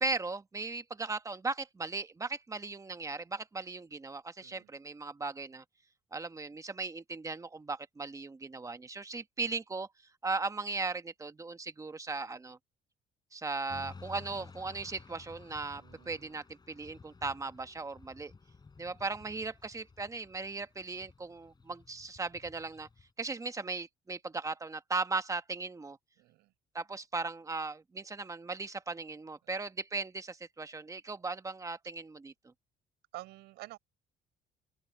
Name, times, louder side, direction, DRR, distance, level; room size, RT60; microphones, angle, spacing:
voice 1, 0.0-5.6 6.1-9.9 10.2-12.6 13.3-18.3 18.8-22.9 23.2-26.0 26.7-32.5, right 3 dB, 20° right, 1.3 m, -37 dB
voice 2, 4.4-4.7 15.7-16.4 26.2-26.5 33.1-33.8, right 18 dB, 90° right, 6.3 m, -49 dB
Motorcycle / Traffic noise roadway noise, 13.7-23.1, left 4 dB, 25° left, 4.7 m, -54 dB
cardioid pair, 110°, 17 cm